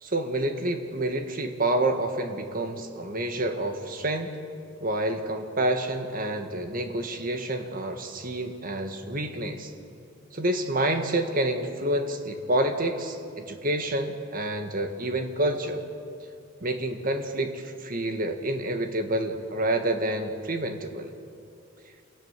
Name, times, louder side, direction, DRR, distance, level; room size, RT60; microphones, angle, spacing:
voice 1, 0.0-4.3 4.8-9.7 10.3-15.8 16.6-21.1, right 1 dB, 45° right, 6 dB, 1.8 m, -28 dB
27.5 x 18.0 x 7.4 m, 2.6 s
head